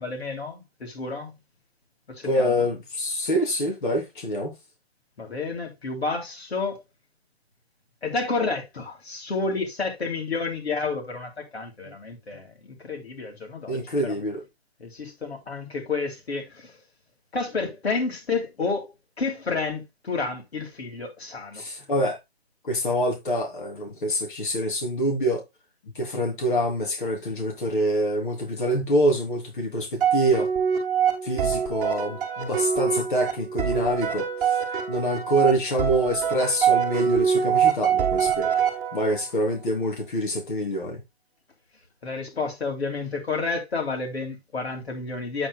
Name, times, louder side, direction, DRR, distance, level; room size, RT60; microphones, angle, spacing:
voice 1, 0.0-1.3 2.1-2.7 5.2-6.8 8.0-14.1 14.8-16.8 17.3-21.6 42.0-45.5, left 4 dB, 80° left, 3.4 m, -30 dB
voice 2, 2.2-4.5 12.3-12.4 13.7-14.4 21.5-22.2 22.6-25.4 25.9-30.5 31.2-34.3 34.9-38.5 38.9-41.0, equal, 50° left, 3.5 m, -25 dB
sound 1, 30.0-39.3, right 8 dB, 10° right, 2.1 m, -24 dB
8.7 x 8.3 x 2.4 m
hypercardioid pair, 165°, 31 cm